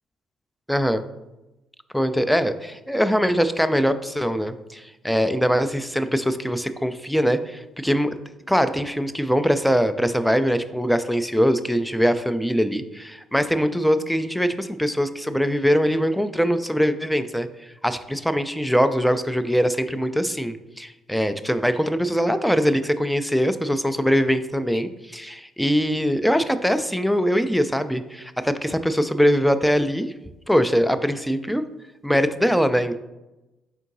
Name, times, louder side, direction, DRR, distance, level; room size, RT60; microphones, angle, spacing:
voice 1, 0.7-1.0 1.9-8.1 8.5-17.5 17.8-30.1 30.5-31.6 32.0-33.0, equal, ahead, 11 dB, 0.4 m, -22 dB
4.5 x 4.4 x 2.6 m, 0.98 s
figure-of-eight pair, 45°, 0 cm